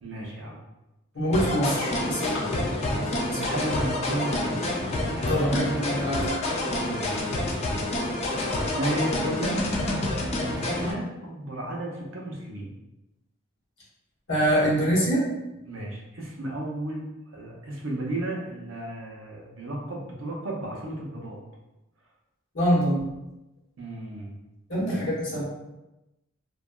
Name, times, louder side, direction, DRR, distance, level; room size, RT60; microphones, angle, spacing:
voice 1, 0.0-0.6 3.3-4.7 5.1-6.0 6.8-7.3 8.7-9.6 10.4-12.8 15.6-17.1 17.3-21.4 23.8-24.3 24.9-25.0, right 1 dB, 60° right, -1 dB, 0.6 m, -33 dB
voice 2, 1.1-3.2 5.3-6.4 14.3-15.3 22.5-23.1 24.7-25.4, equal, 60° left, -6 dB, 0.9 m, -25 dB
sound 1, 1.3-10.9, left 1 dB, 30° left, 0.3 m, -28 dB
2.8 x 2.3 x 2.2 m, 0.96 s
head